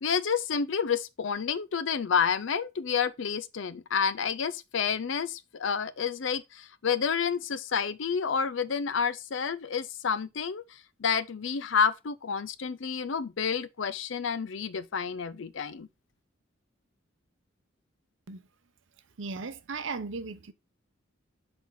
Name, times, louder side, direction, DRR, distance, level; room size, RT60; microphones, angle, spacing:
voice 1, 0.0-10.6 11.0-15.9, left 6 dB, 70° left, 0.5 m, -29 dB
voice 2, 19.2-20.5, right 4 dB, 70° right, 0.7 m, -36 dB
6.2 x 4.4 x 3.9 m
head